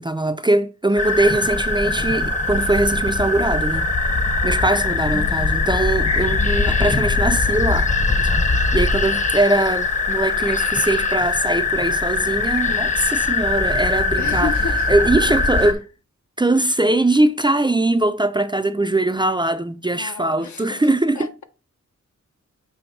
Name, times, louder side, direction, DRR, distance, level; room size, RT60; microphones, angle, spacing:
voice 1, 0.0-3.9 4.4-7.9 8.7-14.5 14.9-15.9 16.4-21.3, right 2 dB, 15° right, 0.4 m, -21 dB
sound 1, 1.0-15.7, left 3 dB, 25° left, 0.8 m, -21 dB
voice 2, 14.2-14.9 19.9-20.8 21.2-21.4, left 6 dB, 65° left, 0.8 m, -31 dB
6.9 x 3.1 x 5.6 m
wide cardioid pair, 135°, 30 cm